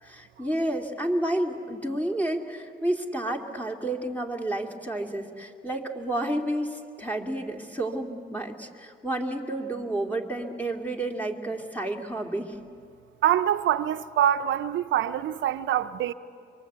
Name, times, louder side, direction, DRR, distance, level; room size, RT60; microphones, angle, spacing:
voice 1, 0.0-12.6, right 1 dB, 10° left, 2.7 m, -30 dB
voice 2, 13.2-16.1, right 11 dB, 70° right, 0.8 m, -25 dB
24.5 x 24.5 x 8.2 m
cardioid pair, 90°, 20 cm